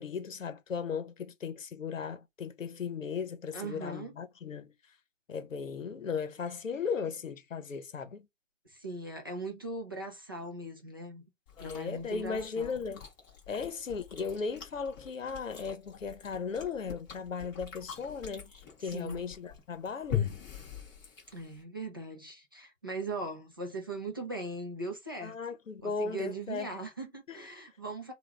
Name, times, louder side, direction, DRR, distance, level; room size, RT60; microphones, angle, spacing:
voice 1, 0.0-4.7 5.3-8.3 11.6-13.0 13.5-20.3 25.2-26.7 27.3-27.5, left 5 dB, 85° left, 0.8 m, -37 dB
voice 2, 3.5-4.1 8.7-11.2 11.6-12.8 18.8-19.2 21.3-25.4 25.8-28.1, right 2 dB, 20° right, 0.4 m, -40 dB
Chewing mastication, 11.5-21.6, left 9 dB, 15° left, 0.9 m, -42 dB
3.4 x 2.3 x 3.1 m
figure-of-eight pair, 145°, 38 cm